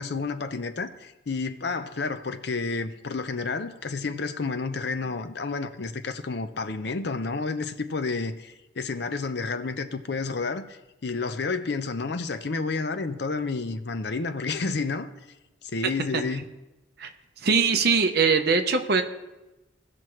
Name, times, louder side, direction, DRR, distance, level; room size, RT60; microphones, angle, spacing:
voice 1, 0.0-15.1 15.6-16.4, left 4 dB, 60° left, 0.6 m, -30 dB
voice 2, 17.4-19.0, right 5 dB, 55° right, 0.8 m, -21 dB
17.0 x 6.1 x 3.1 m
head